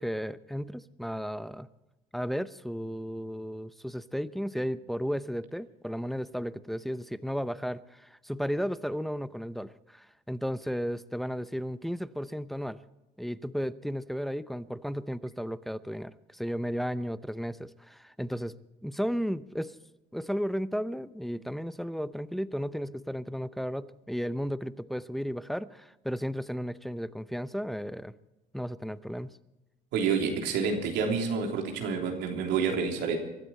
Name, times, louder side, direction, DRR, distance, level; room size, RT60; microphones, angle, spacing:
voice 1, 0.0-1.7 2.1-12.8 13.2-19.8 20.1-28.1 28.5-29.3, equal, ahead, 14 dB, 0.7 m, -34 dB
voice 2, 29.9-33.2, right 5 dB, 90° right, 2 dB, 3.5 m, -28 dB
24.0 x 13.0 x 4.3 m, 0.99 s
cardioid pair, 110°, 17 cm